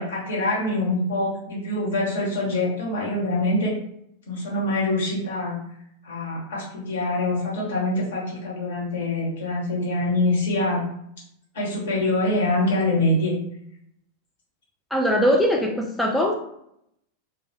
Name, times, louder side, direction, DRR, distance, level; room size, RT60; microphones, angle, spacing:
voice 1, 0.0-3.7 4.3-5.6 6.0-10.8 11.5-13.4, left 1 dB, 60° left, -4 dB, 0.9 m, -24 dB
voice 2, 14.9-16.3, equal, 5° left, -1 dB, 0.3 m, -21 dB
2.2 x 2.0 x 2.7 m, 0.74 s
figure-of-eight pair, 90°, 0 cm